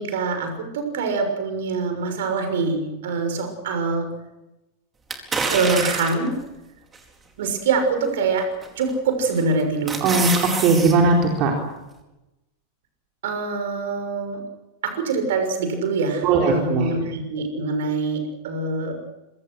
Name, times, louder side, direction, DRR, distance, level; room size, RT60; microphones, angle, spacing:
voice 1, 0.0-4.1 5.5-6.4 7.4-10.2 13.2-14.4 14.8-19.0, right 4 dB, 55° right, 7 dB, 6.3 m, -24 dB
sound 1, 5.1-6.3 6.9-7.0 8.6-9.0 9.4-10.9 11.3-11.4, right 4 dB, 20° right, 4.6 m, -27 dB
voice 2, 10.0-11.5 16.2-16.9, right 3 dB, 40° right, 1 dB, 4.2 m, -18 dB
26.0 x 24.5 x 6.5 m, 0.99 s
figure-of-eight pair, 90°, 0 cm